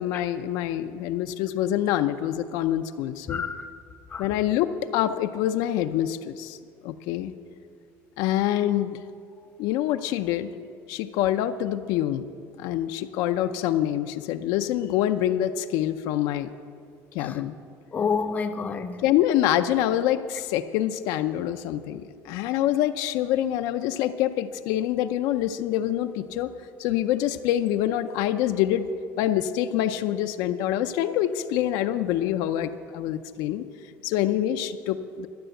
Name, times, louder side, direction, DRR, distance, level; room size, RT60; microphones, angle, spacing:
voice 1, 0.0-3.4 4.2-6.6 6.8-7.3 8.2-9.0 9.6-10.5 10.9-12.3 12.6-16.5 17.1-17.5 19.0-26.5 26.8-28.9 29.2-33.7 34.0-35.3, left 12 dB, 80° left, 9 dB, 0.5 m, -26 dB
voice 2, 3.3-3.7 4.1-4.4 17.2-17.4 17.9-19.0, left 5 dB, 25° left, 8 dB, 0.6 m, -29 dB
13.0 x 7.8 x 7.8 m, 2.3 s
cardioid pair, 155°, 7 cm